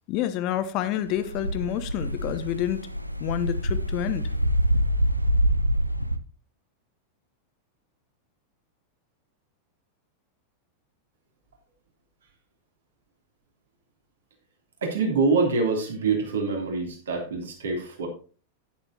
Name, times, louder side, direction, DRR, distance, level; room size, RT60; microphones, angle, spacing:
voice 1, 0.1-2.8 3.2-4.3, left 11 dB, 40° left, 0.9 m, -28 dB
sound 1, 1.1-6.2, equal, 85° right, 0.5 m, -25 dB
voice 2, 14.8-18.1, right 4 dB, 65° right, 3.1 m, -25 dB
11.0 x 9.9 x 2.9 m
figure-of-eight pair, 90°, 0 cm